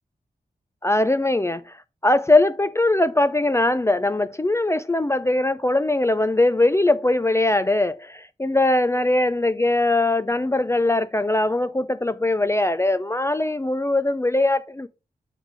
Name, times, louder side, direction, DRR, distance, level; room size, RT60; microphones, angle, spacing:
voice 1, 0.8-1.8 2.0-14.9, left 2 dB, 15° left, 0.4 m, -21 dB
7.2 x 3.7 x 4.6 m
wide cardioid pair, 95°, 16 cm